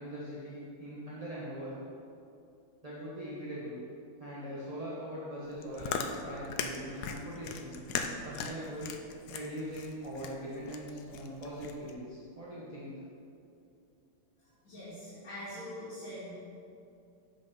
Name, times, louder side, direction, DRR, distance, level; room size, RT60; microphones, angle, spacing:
voice 1, 0.0-1.7 2.8-3.8 4.2-7.7 8.2-8.9 9.3-12.9, equal, 25° right, -8 dB, 0.9 m, -41 dB
Chewing mastication, 5.5-11.9, left 6 dB, 85° left, 0.9 m, -39 dB
voice 2, 14.6-16.3, equal, 60° left, -12 dB, 3.0 m, -43 dB
7.9 x 5.4 x 5.4 m, 2.6 s
omnidirectional pair, 2.4 m